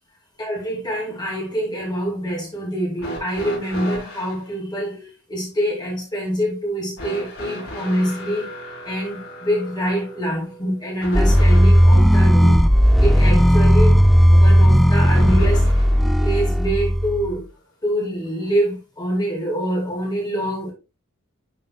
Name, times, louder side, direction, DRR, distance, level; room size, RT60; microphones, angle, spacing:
voice 1, 0.4-8.4 8.8-12.6 13.0-14.0 14.3-15.6 16.2-17.5 17.8-20.7, equal, 20° left, 2.7 m, -25 dB
sound 1, 3.0-4.4 7.0-12.1 15.0-16.1 17.3-17.4 18.5-18.6, equal, 70° left, 4.4 m, -35 dB
sound 2, 11.1-17.4, equal, ahead, 0.4 m, -14 dB
10.5 x 5.6 x 2.3 m
head